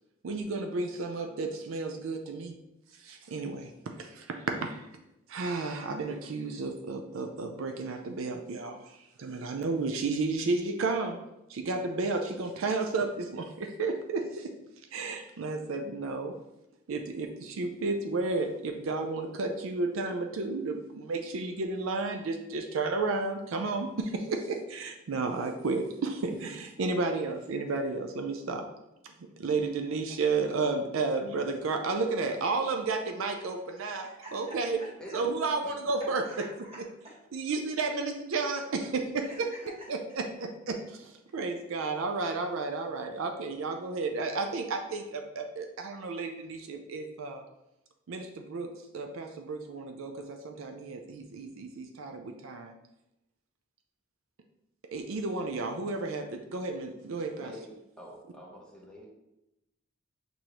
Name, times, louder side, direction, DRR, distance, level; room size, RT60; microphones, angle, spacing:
voice 1, 0.2-2.5 2.9-4.9 5.3-11.2 11.5-14.5 14.9-16.3 16.9-28.6 29.0-34.1 34.3-34.8 35.1-36.2 37.3-39.3 39.9-47.4 48.1-52.7 54.9-57.5, right 3 dB, 75° right, 5 dB, 0.4 m, -32 dB
voice 2, 34.0-35.2 36.2-36.8 39.3-39.9, right 1 dB, 30° right, -6 dB, 1.4 m, -47 dB
voice 3, 57.3-59.0, left 1 dB, 5° left, -4 dB, 0.8 m, -47 dB
6.3 x 2.6 x 2.9 m, 0.90 s
head